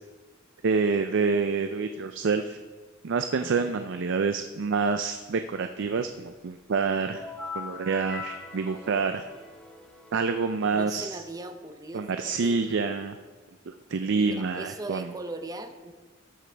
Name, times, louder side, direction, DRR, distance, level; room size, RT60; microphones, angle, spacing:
voice 1, 0.6-2.6 3.0-7.3 7.6-9.3 10.1-11.2 11.9-13.2 13.7-15.1, right 4 dB, 60° right, 8 dB, 0.5 m, -27 dB
voice 2, 3.4-3.7 10.7-12.6 14.1-15.9, right 2 dB, 20° right, 8 dB, 0.6 m, -39 dB
sound 1, 7.1-10.7, left 3 dB, 5° left, 1.1 m, -41 dB
13.5 x 11.0 x 3.4 m, 1.4 s
head